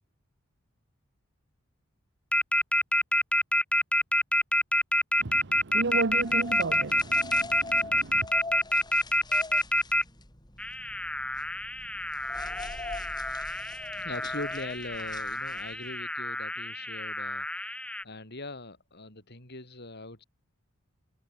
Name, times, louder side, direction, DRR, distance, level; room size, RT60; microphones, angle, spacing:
sound 1, 2.3-10.0 10.6-18.0, left 1 dB, 5° left, 0.7 m, -27 dB
voice 1, 5.2-8.3, right 3 dB, 60° right, 1.0 m, -33 dB
sound 2, 5.9-15.9, left 3 dB, 20° left, 6.6 m, -43 dB
voice 2, 14.0-17.8 18.0-20.2, left 2 dB, 55° left, 6.6 m, -41 dB
head